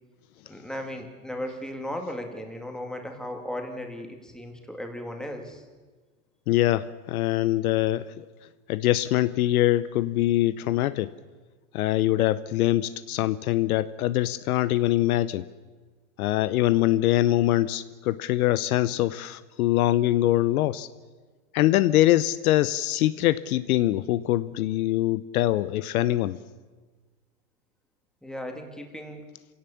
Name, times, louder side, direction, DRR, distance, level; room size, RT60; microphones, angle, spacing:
voice 1, 0.5-5.6 28.2-29.2, left 1 dB, ahead, 3 dB, 2.2 m, -36 dB
voice 2, 6.5-8.2 8.7-11.1 11.7-15.4 16.2-20.9 21.5-26.4, left 14 dB, 65° left, 16 dB, 0.8 m, -23 dB
26.5 x 17.0 x 7.2 m, 1.4 s
supercardioid pair, 145°, 47 cm